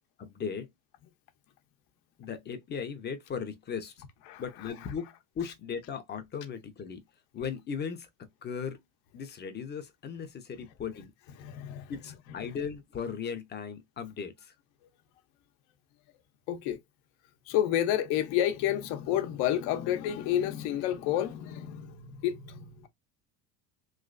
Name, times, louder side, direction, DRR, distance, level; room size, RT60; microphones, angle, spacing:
voice 1, 0.2-0.7 2.2-4.0 4.4-7.0 7.3-8.8 9.1-11.1 11.9-14.5, left 6 dB, 25° left, 0.6 m, -37 dB
voice 2, 11.4-11.9 16.5-16.8 17.5-22.9, left 11 dB, 65° left, 0.8 m, -30 dB
3.2 x 3.0 x 2.5 m
supercardioid pair, 130°, 41 cm